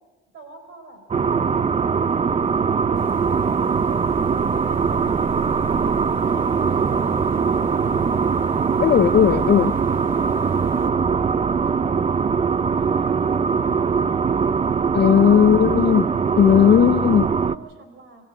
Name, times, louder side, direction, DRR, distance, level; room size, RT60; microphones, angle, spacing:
voice 1, 0.3-1.0 1.5-3.1 3.7-4.0 4.5-5.5 6.2-8.5 10.1-15.2 15.7-16.7 17.4-18.2, right 4 dB, 80° right, 6 dB, 4.7 m, -45 dB
sound 1, 1.1-17.6, right 6 dB, 30° right, 0.6 m, -21 dB
sound 2, 2.9-10.9, equal, 10° right, 3.4 m, -39 dB
voice 2, 8.8-9.7 14.9-16.0 16.4-17.3, left 9 dB, 60° left, 15 dB, 0.8 m, -16 dB
24.5 x 15.0 x 8.6 m, 1.2 s
cardioid pair, 90°, 20 cm